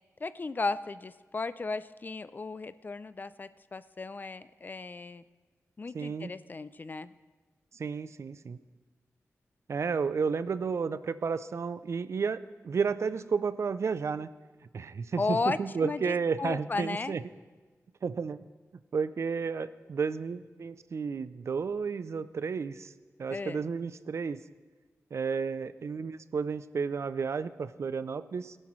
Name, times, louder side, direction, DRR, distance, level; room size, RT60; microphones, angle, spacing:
voice 1, 0.2-5.2 5.8-7.1 15.2-17.2 23.3-23.6, left 3 dB, 35° left, 15 dB, 0.4 m, -35 dB
voice 2, 5.9-6.3 7.7-8.6 9.7-14.3 14.7-17.2 18.0-18.4 18.9-22.9 23.2-24.4 25.1-28.6, right 5 dB, 60° right, 14 dB, 0.4 m, -32 dB
19.0 x 12.0 x 3.1 m, 1.4 s
wide cardioid pair, 115°, 5 cm